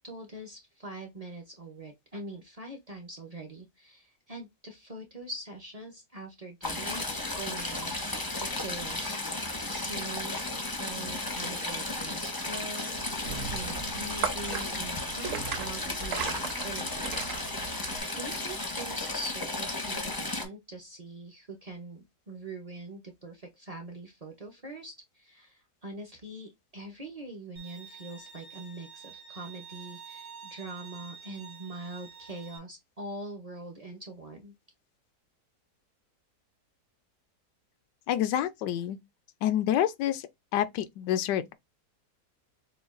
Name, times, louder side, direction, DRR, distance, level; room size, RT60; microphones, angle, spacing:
voice 1, 0.0-8.1 8.4-10.5 10.8-34.5, right 2 dB, 45° right, 0.5 m, -43 dB
Stream / Trickle dribble, 6.6-20.4, left 2 dB, 30° left, 0.4 m, -34 dB
sound 1, 12.9-18.0, right 7 dB, 60° right, 1.0 m, -37 dB
Bowed string instrument, 27.6-32.6, right 6 dB, 85° right, 1.9 m, -48 dB
voice 2, 38.1-39.0 39.4-40.2 40.5-41.5, left 11 dB, 90° left, 1.2 m, -28 dB
6.8 x 2.3 x 2.5 m
omnidirectional pair, 1.8 m